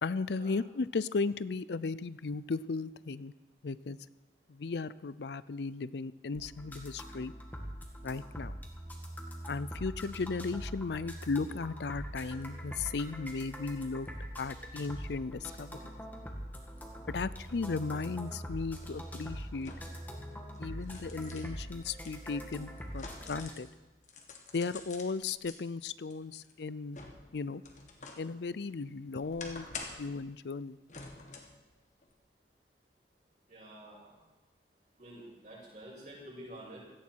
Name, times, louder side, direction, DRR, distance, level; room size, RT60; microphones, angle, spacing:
voice 1, 0.0-3.3 3.6-4.0 4.5-7.3 8.0-8.5 9.5-14.1 14.4-15.9 17.1-19.7 20.6-23.7 24.5-27.0 27.3-27.6 28.2-29.7 30.0-30.8, left 4 dB, 75° left, 17 dB, 0.5 m, -36 dB
sound 1, 6.3-23.5, equal, 10° left, 2.0 m, -43 dB
sound 2, 18.3-18.4 19.6-20.1 20.5-23.7 24.0-25.6 26.1-28.3 28.7-30.2 30.9-31.6 32.0-32.1, left 4 dB, 45° left, 1.8 m, -48 dB
voice 2, 33.5-34.2 35.0-36.8, right 1 dB, 45° right, -4 dB, 7.0 m, -49 dB
17.0 x 15.5 x 4.7 m, 1.1 s
head